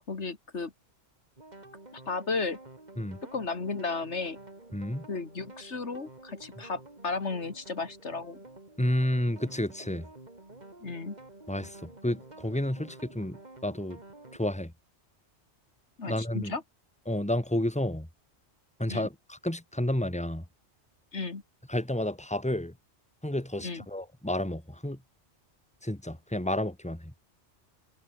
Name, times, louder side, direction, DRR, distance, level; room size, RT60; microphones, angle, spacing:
voice 1, 0.1-0.7 1.9-2.6 3.3-4.4 5.1-8.4 10.8-11.2 16.0-16.6 18.9-19.1 21.1-21.4 23.6-23.8, left 4 dB, 75° left, 2.6 m, -34 dB
sound 1, 1.4-14.4, right 2 dB, 40° right, 3.0 m, -50 dB
voice 2, 4.7-5.1 8.8-10.1 11.5-13.4 13.6-14.0 14.3-14.7 16.0-16.5 17.1-18.1 18.8-20.4 21.7-22.7 23.2-25.0 25.8-27.1, left 1 dB, 5° left, 2.8 m, -31 dB
omnidirectional pair, 1.2 m